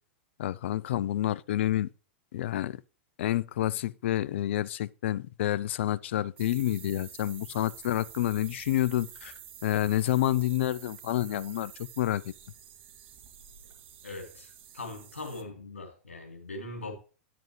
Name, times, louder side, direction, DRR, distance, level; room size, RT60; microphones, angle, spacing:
voice 1, 0.4-1.9 2.3-2.8 3.2-9.3 9.6-12.3, left 13 dB, 65° left, 0.5 m, -29 dB
sound 1, 6.4-15.4, right 10 dB, 60° right, 1.6 m, -49 dB
voice 2, 14.0-16.9, left 2 dB, 85° left, 3.3 m, -41 dB
10.5 x 7.7 x 3.2 m
hypercardioid pair, 100°, 7 cm